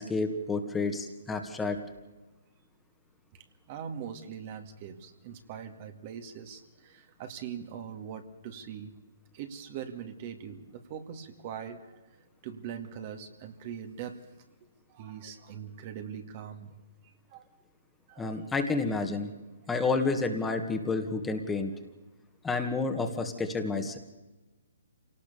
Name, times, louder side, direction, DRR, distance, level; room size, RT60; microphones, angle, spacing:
voice 1, 0.0-1.8 18.2-19.3 19.7-21.7 22.4-24.0, left 3 dB, 10° left, 5 dB, 1.9 m, -30 dB
voice 2, 3.3-9.0 9.3-12.2 12.4-14.2 14.9-16.8 17.3-17.5 18.1-18.5, right 8 dB, 35° right, 7 dB, 2.2 m, -42 dB
26.5 x 18.5 x 7.0 m, 1.2 s
hypercardioid pair, 140°, 0 cm